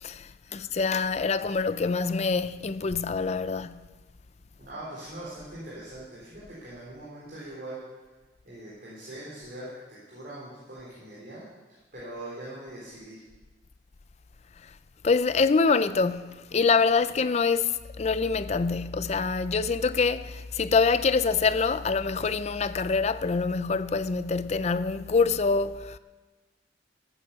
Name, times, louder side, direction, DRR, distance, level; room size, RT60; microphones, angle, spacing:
voice 1, 0.0-3.9 15.0-26.0, left 4 dB, 35° left, 0.4 m, -25 dB
voice 2, 4.6-7.8 8.4-11.5 11.9-13.2, right 1 dB, 50° right, 3.8 m, -42 dB
14.0 x 8.9 x 6.8 m
head